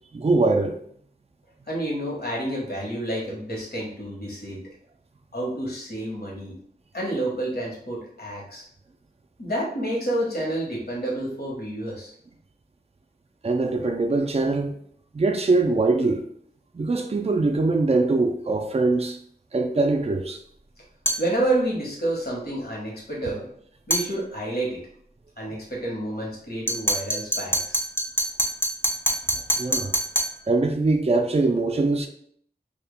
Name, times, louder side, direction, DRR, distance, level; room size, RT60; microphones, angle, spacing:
voice 1, 0.1-0.8 13.4-14.8 15.1-16.2 16.7-19.2 19.5-20.4 29.3-29.9 30.5-32.1, right 3 dB, 35° right, 4 dB, 0.5 m, -22 dB
voice 2, 1.7-4.6 5.3-6.5 6.9-8.6 9.4-12.1 21.2-23.4 23.9-24.8 25.4-27.8, right 1 dB, 65° left, -4 dB, 1.5 m, -29 dB
sound 1, 21.0-21.3 23.9-24.1 26.7-30.4, right 1 dB, 15° left, 0.9 m, -25 dB
5.2 x 2.8 x 2.2 m, 0.63 s
wide cardioid pair, 45°, 17 cm